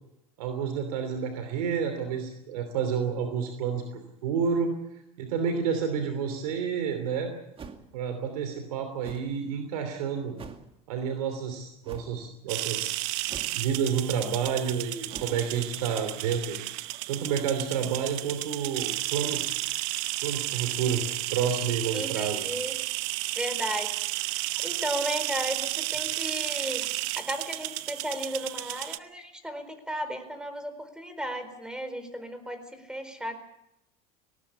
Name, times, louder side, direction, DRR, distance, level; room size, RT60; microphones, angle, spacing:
voice 1, 0.4-4.7 5.2-7.3 7.9-10.4 10.9-12.9 13.2-16.6 17.1-19.6 20.2-21.0 21.3-22.4, right 7 dB, 85° right, 7 dB, 3.0 m, -30 dB
sound 1, 7.6-8.0 9.0-9.3 10.4-10.7 11.8-12.2 13.3-13.8 15.1-15.4, right 5 dB, 30° right, 2.4 m, -44 dB
sound 2, 12.5-29.0, right 19 dB, 70° right, 0.9 m, -32 dB
voice 2, 21.9-22.8 23.3-23.9 24.2-26.9 27.2-33.4, equal, 5° right, 9 dB, 4.4 m, -35 dB
19.0 x 18.5 x 8.6 m, 0.85 s
supercardioid pair, 100°, 19 cm